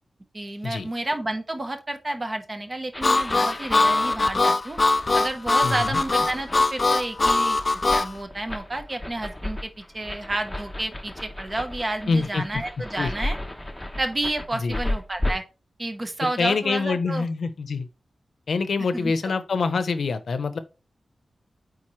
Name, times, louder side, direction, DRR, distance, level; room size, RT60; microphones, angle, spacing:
voice 1, 0.3-4.8 5.1-7.6 7.9-13.4 14.0-15.4 15.8-17.2 18.9-19.3, right 1 dB, 30° right, 1.0 m, -30 dB
sound 1, 2.9-15.3, left 1 dB, 5° left, 0.9 m, -35 dB
Harmonica, 3.0-8.1, left 3 dB, 35° left, 0.5 m, -21 dB
voice 2, 5.6-6.0 12.1-12.6 13.0-13.1 14.6-14.8 16.4-17.9 18.5-20.6, left 4 dB, 80° left, 0.8 m, -25 dB
8.7 x 4.1 x 3.2 m
wide cardioid pair, 145°, 0 cm